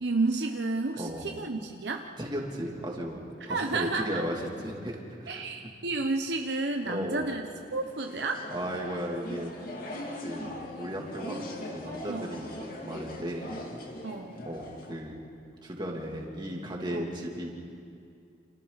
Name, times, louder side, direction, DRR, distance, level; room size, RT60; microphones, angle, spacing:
voice 1, 0.0-2.1 3.5-4.2 5.3-7.4 7.7-8.4 12.1-12.3 14.0-14.4 16.9-17.0, right 3 dB, 65° right, 3 dB, 1.0 m, -31 dB
voice 2, 2.2-3.2 3.5-5.4 6.9-7.3 8.5-9.5 10.2-13.5 14.5-15.2 15.6-17.5, equal, 25° right, -1 dB, 3.0 m, -35 dB
sound 1, 7.5-14.9, left 1 dB, 50° left, 2.5 m, -41 dB
29.5 x 28.0 x 4.2 m, 2.4 s
head